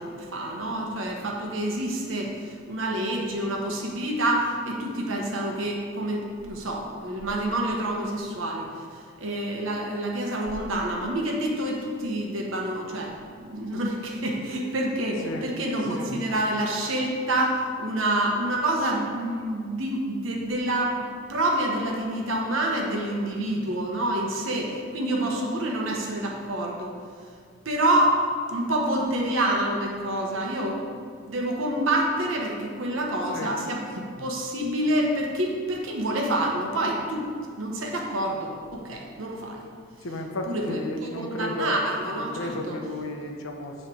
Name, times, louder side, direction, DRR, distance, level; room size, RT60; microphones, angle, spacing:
voice 1, 0.0-26.9 27.6-28.2 28.5-37.3 37.6-39.6 40.5-42.9, right 1 dB, 80° right, -1 dB, 1.0 m, -27 dB
voice 2, 40.0-41.8 42.1-43.8, left 2 dB, 90° left, 3 dB, 0.8 m, -33 dB
7.9 x 3.3 x 6.2 m, 2.1 s
head